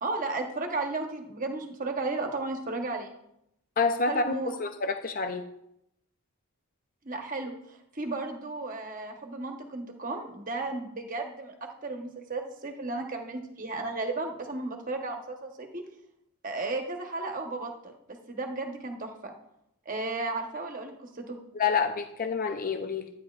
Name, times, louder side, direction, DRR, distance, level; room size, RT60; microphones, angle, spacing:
voice 1, 0.0-3.1 4.1-4.5 7.0-15.8 16.4-19.3 19.9-21.4, right 3 dB, 35° right, 3 dB, 1.0 m, -34 dB
voice 2, 3.8-4.3 4.6-5.4 21.5-23.1, left 5 dB, 40° left, 7 dB, 0.5 m, -28 dB
12.5 x 9.2 x 2.4 m, 0.81 s
head